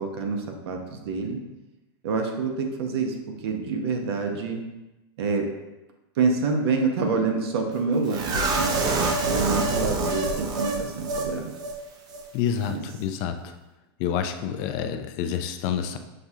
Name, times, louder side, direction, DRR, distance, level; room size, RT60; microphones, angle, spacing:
voice 1, 0.0-1.4 2.0-3.1 3.4-4.6 5.2-5.5 6.2-11.5 12.7-12.8, right 4 dB, 70° right, 3 dB, 0.7 m, -27 dB
sound 1, 8.1-11.3 11.6-11.7 12.1-12.2, right 2 dB, 30° right, 0.6 m, -26 dB
voice 2, 12.3-13.6 14.0-16.0, left 8 dB, 50° left, 7 dB, 0.4 m, -28 dB
6.2 x 2.3 x 2.7 m, 1.0 s
hypercardioid pair, 120°, 14 cm